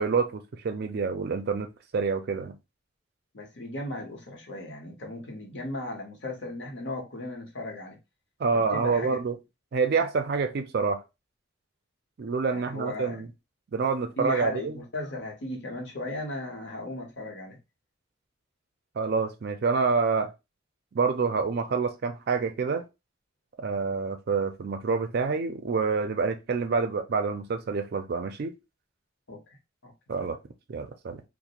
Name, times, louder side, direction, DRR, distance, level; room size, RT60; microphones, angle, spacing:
voice 1, 0.0-2.5 8.4-9.3 9.7-11.0 12.2-13.3 13.7-14.8 19.0-20.3 20.9-22.8 23.6-28.5 30.1-30.4 30.7-31.2, right 4 dB, 55° right, 0.4 m, -27 dB
voice 2, 3.3-8.0 8.5-9.2 12.5-13.2 14.2-17.6 29.3-29.4 29.8-29.9, left 1 dB, 70° left, 0.9 m, -36 dB
2.4 x 2.0 x 2.8 m
head